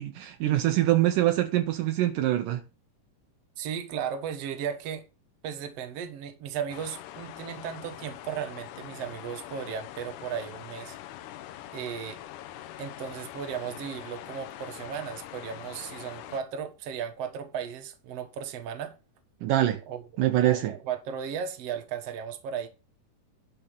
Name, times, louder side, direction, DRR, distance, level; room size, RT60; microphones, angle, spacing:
voice 1, 0.0-2.6 19.4-19.8 20.2-20.7, right 14 dB, 75° right, 2.2 m, -24 dB
voice 2, 3.6-5.1 5.4-11.0 11.7-12.2 12.8-19.0 19.9-22.7, right 8 dB, 55° right, 2.1 m, -35 dB
sound 1, 6.7-16.4, left 13 dB, 75° left, 2.1 m, -43 dB
11.0 x 5.2 x 5.4 m
omnidirectional pair, 3.9 m